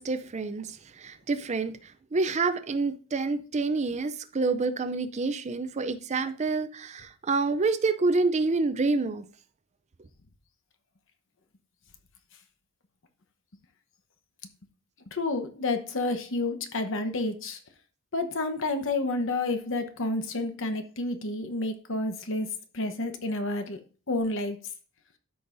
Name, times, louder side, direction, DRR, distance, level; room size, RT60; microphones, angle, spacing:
voice 1, 0.0-9.2, right 3 dB, 30° right, 0.5 m, -28 dB
voice 2, 15.1-17.6 18.1-22.5 22.7-23.8 24.1-24.6, left 2 dB, 60° left, 1.0 m, -30 dB
12.5 x 5.4 x 2.6 m
head